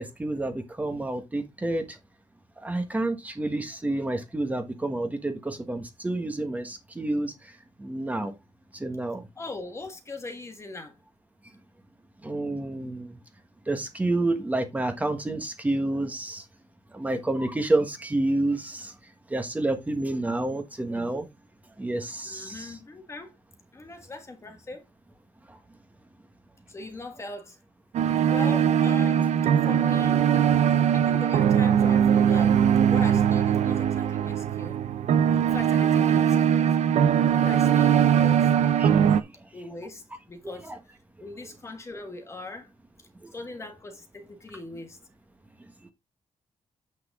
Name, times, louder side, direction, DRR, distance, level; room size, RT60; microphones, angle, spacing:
voice 1, 0.0-2.0 2.6-7.3 7.8-8.3 8.7-9.2 12.2-13.2 13.7-16.4 16.9-18.9 19.3-21.3 21.8-22.8 25.5-25.6 38.8-39.2 40.4-40.8 43.2-43.3, right 2 dB, 15° right, 1.3 m, -29 dB
voice 2, 9.3-11.0 22.2-23.3 23.7-24.9 26.7-27.6 28.3-29.4 29.7-30.3 30.9-32.6 32.9-34.8 35.4-36.8 37.4-38.5 39.5-40.7 41.2-42.7 43.0-45.0, left 2 dB, 25° left, 1.5 m, -40 dB
sound 1, 27.9-39.2, right 9 dB, 75° right, 0.8 m, -21 dB
8.1 x 6.2 x 3.6 m
wide cardioid pair, 160°, 12 cm